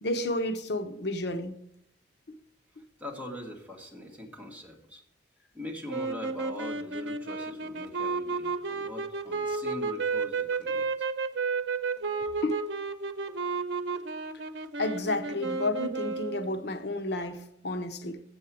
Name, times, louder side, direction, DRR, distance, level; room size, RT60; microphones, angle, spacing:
voice 1, 0.0-1.6 12.4-12.6 14.8-18.2, left 2 dB, 65° left, 0.7 m, -31 dB
voice 2, 3.0-5.0 5.5-11.1, left 1 dB, 10° right, 1.6 m, -42 dB
sound 1, 5.9-16.6, right 4 dB, 75° right, 0.7 m, -32 dB
7.6 x 7.1 x 7.5 m
head